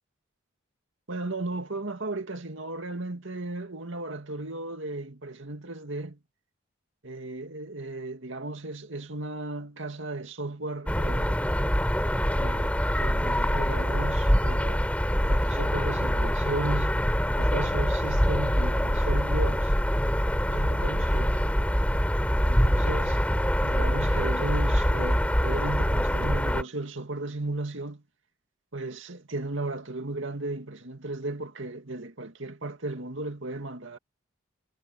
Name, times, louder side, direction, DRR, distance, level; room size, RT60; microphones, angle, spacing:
voice 1, 1.1-6.2 7.0-11.4 12.3-14.8 15.2-17.0 17.4-19.7 20.5-21.4 22.4-28.0 28.7-34.0, right 2 dB, 65° right, 2.4 m, -35 dB
sound 1, 10.9-26.6, equal, 5° left, 3.7 m, -24 dB
head